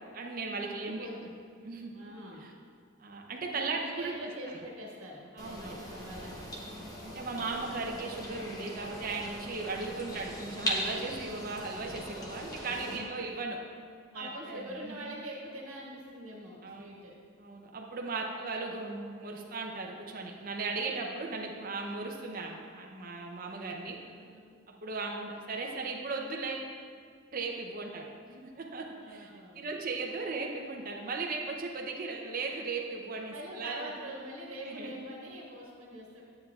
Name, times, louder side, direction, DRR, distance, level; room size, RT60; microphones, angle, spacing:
voice 1, 0.1-1.1 1.6-1.9 2.4-2.5 3.0-4.1 5.3-5.8 7.0-13.6 14.1-15.1 16.6-16.9 17.4-24.0 24.7-26.7 27.3-29.3 29.6-33.9 34.7-34.9, right 3 dB, 45° right, 1 dB, 0.6 m, -37 dB
voice 2, 0.7-1.3 1.9-2.5 3.7-6.6 12.8-13.2 14.1-17.2 24.0-24.5 29.0-29.6 33.3-36.2, right 1 dB, 85° right, -4 dB, 1.3 m, -44 dB
sound 1, 5.4-13.0, equal, 20° left, 0.8 m, -40 dB
9.7 x 7.6 x 2.3 m, 2.1 s
head